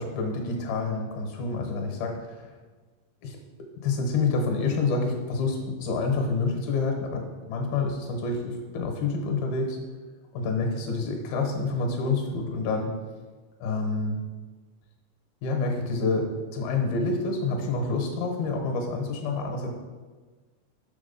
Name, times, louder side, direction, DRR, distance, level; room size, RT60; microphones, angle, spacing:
voice 1, 0.0-2.5 3.2-3.4 3.8-9.8 10.3-12.9 13.6-14.2 15.4-19.7, left 3 dB, 70° left, 2 dB, 2.9 m, -28 dB
7.1 x 6.2 x 5.4 m, 1.4 s
omnidirectional pair, 4.8 m